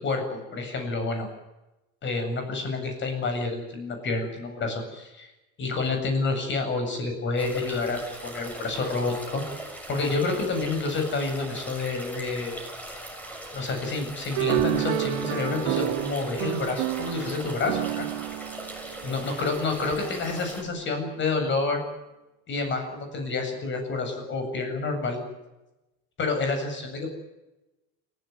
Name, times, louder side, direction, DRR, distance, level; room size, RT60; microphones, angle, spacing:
voice 1, 0.0-1.3 2.0-5.3 5.6-9.4 9.9-12.5 13.5-18.0 19.0-21.8 22.5-25.2 26.2-27.1, left 3 dB, 30° left, 5 dB, 7.8 m, -29 dB
sound 1, 7.4-20.6, right 1 dB, 5° left, 6.4 m, -40 dB
sound 2, 14.4-19.9, right 22 dB, 80° right, 0.8 m, -30 dB
29.5 x 16.0 x 9.5 m, 0.99 s
cardioid pair, 155°, 35 cm